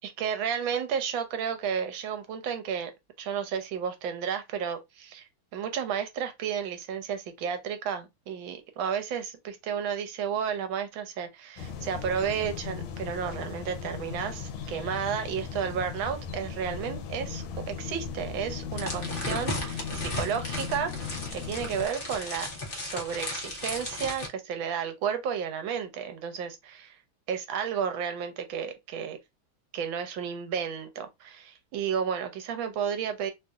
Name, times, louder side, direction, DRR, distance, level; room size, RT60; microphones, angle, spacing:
voice 1, 0.0-2.9 3.2-22.5 22.8-27.0 27.3-29.2 29.7-33.3, right 7 dB, 75° right, 1.4 m, -32 dB
sound 1, 11.6-21.9, left 6 dB, 80° left, 1.5 m, -37 dB
sound 2, 18.7-24.3, left 2 dB, 45° left, 0.7 m, -35 dB
3.5 x 2.6 x 2.3 m
omnidirectional pair, 2.2 m